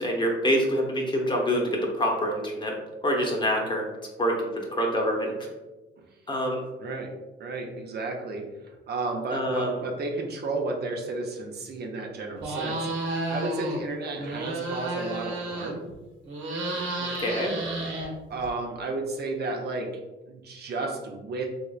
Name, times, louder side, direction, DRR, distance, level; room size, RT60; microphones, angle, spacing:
voice 1, 0.0-2.7 3.0-3.8 4.2-4.4 4.7-5.3 6.3-6.6 9.3-9.8 17.0-17.6, equal, 25° left, 0 dB, 0.9 m, -26 dB
voice 2, 6.8-7.1 7.4-15.8 18.3-19.9 20.3-21.4, right 3 dB, 55° right, 1 dB, 0.6 m, -33 dB
sound 1, 12.4-13.8 14.1-15.9 16.2-18.5, right 2 dB, 75° right, 1.0 m, -32 dB
3.5 x 3.1 x 2.4 m, 1.1 s
cardioid pair, 90°, 20 cm